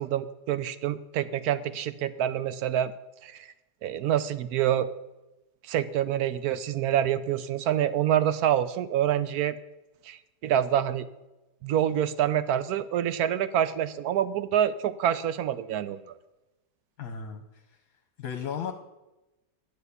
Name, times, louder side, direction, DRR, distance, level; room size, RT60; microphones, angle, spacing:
voice 1, 0.0-2.9 3.2-3.5 3.8-4.9 5.7-9.6 10.1-10.2 10.4-11.0 11.6-16.0, right 10 dB, 70° right, 14 dB, 1.0 m, -26 dB
voice 2, 17.0-17.4 18.2-18.7, left 7 dB, 60° left, 7 dB, 1.2 m, -34 dB
10.5 x 6.8 x 8.2 m, 1.0 s
omnidirectional pair, 1.9 m